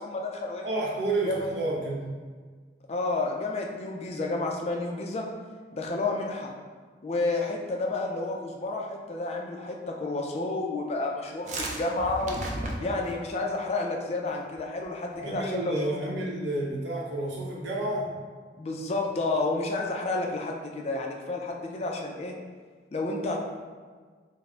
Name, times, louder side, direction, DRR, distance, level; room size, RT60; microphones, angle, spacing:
voice 1, 0.0-0.7 1.3-1.5 2.9-5.3 5.7-6.5 7.0-12.4 12.8-15.8 18.6-22.3 22.9-23.4, left 2 dB, 35° left, 1 dB, 0.3 m, -30 dB
voice 2, 0.6-2.1 15.2-18.1, right 2 dB, 80° right, -3 dB, 0.7 m, -30 dB
sound 1, 11.2-13.3 14.3-14.6 14.8-14.9 15.1-15.5, right 1 dB, 40° right, 0.4 m, -35 dB
3.7 x 2.0 x 3.2 m, 1.5 s
head